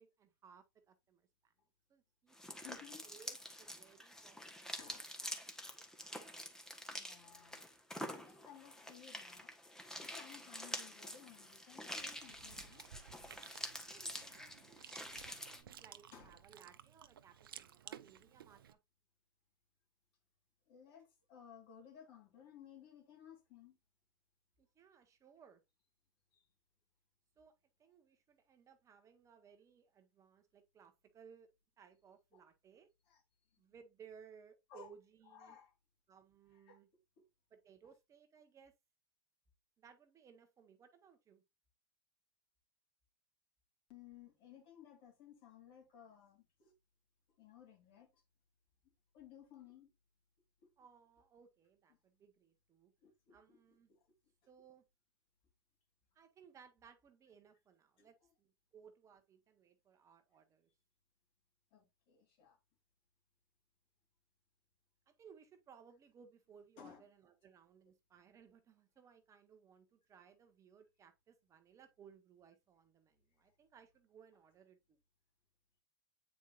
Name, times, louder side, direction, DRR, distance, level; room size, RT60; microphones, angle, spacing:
voice 1, 0.0-1.5 1.9-5.8 13.7-18.8 24.6-25.6 27.4-31.5 31.8-32.9 33.6-35.6 36.1-36.9 37.5-38.7 39.8-41.4 50.8-52.9 53.3-53.9 54.5-54.8 56.1-60.7 65.1-75.0, right 7 dB, 25° right, 1.0 m, -63 dB
sound 1, 2.3-15.6, left 1 dB, 5° left, 1.2 m, -47 dB
voice 2, 2.6-3.0 4.8-5.1 6.7-7.7 8.1-12.8 16.1-16.4 20.7-23.8 26.3-26.4 32.3-32.4 33.1-33.2 33.5-33.6 34.7-34.9 35.3-35.7 36.5-36.8 37.2-37.3 43.9-46.7 47.4-48.2 49.1-49.9 50.6-50.7 53.0-53.6 53.9-54.0 58.0-58.1 61.7-62.6 66.8-67.0, left 8 dB, 50° left, 3.1 m, -58 dB
Chewing mastication, 11.8-18.7, right 9 dB, 80° right, 0.6 m, -56 dB
8.3 x 4.7 x 2.4 m
hypercardioid pair, 105°, 12 cm